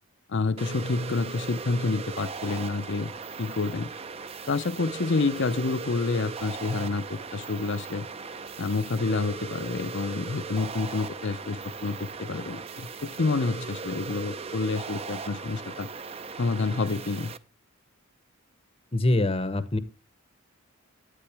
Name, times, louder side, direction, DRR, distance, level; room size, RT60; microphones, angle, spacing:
voice 1, 0.3-3.1 3.4-3.9 4.5-8.1 8.6-15.9 16.4-17.3, left 3 dB, 55° left, 0.6 m, -28 dB
sound 1, 0.6-17.4, right 5 dB, 25° right, 0.5 m, -38 dB
voice 2, 18.9-19.8, left 2 dB, 25° left, 0.8 m, -24 dB
11.5 x 9.0 x 3.4 m
head